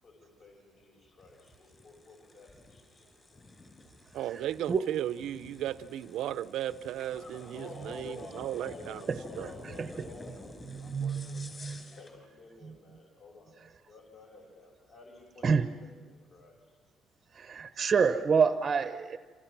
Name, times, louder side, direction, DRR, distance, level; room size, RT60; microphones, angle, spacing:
voice 1, 0.0-3.4 7.1-13.5 13.9-16.8, left 3 dB, 45° left, 5.5 m, -51 dB
sound 1, 1.2-12.2, left 2 dB, 20° left, 5.4 m, -51 dB
voice 2, 4.1-9.0 9.4-9.5, right 12 dB, 70° right, 0.7 m, -35 dB
voice 3, 10.8-11.8 15.4-15.7 17.3-19.2, right 6 dB, 30° right, 0.9 m, -27 dB
28.0 x 27.5 x 6.0 m
cardioid pair, 165°, 0 cm